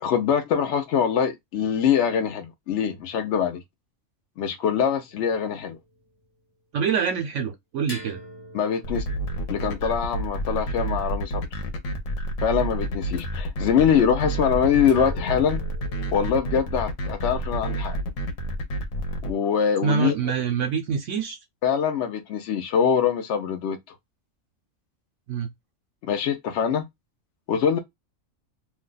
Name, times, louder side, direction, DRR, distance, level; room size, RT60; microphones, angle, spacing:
voice 1, 0.0-3.6 4.4-5.8 8.5-9.0 9.5-11.5 12.4-15.6 16.1-18.0 19.2-20.2 21.6-23.9 26.0-26.9 27.5-27.8, left 7 dB, 65° left, 0.8 m, -23 dB
sound 1, 5.1-6.3 7.9-11.6 13.1-13.2 14.8-16.4, equal, 35° left, 0.4 m, -44 dB
voice 2, 6.7-8.2 19.8-21.4 25.3-25.5, right 6 dB, 70° right, 0.9 m, -25 dB
sound 2, 8.8-19.3, right 2 dB, 90° left, 1.2 m, -29 dB
2.7 x 2.3 x 3.8 m
omnidirectional pair, 1.4 m